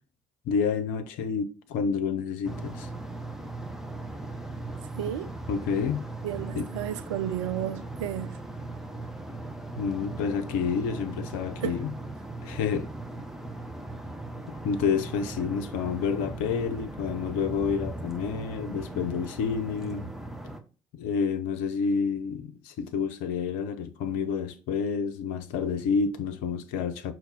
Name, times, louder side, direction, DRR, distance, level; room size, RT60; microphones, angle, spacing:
voice 1, 0.5-2.9 5.5-6.0 6.6-6.7 9.8-11.9 12.4-12.9 14.5-20.1 20.9-27.1, left 6 dB, 65° left, 0.7 m, -29 dB
sound 1, 2.4-20.6, right 2 dB, 5° right, 0.9 m, -38 dB
voice 2, 5.0-5.3 6.2-8.4 11.6-11.8, right 12 dB, 70° right, 0.5 m, -32 dB
6.1 x 3.1 x 5.4 m
figure-of-eight pair, 50°, 16 cm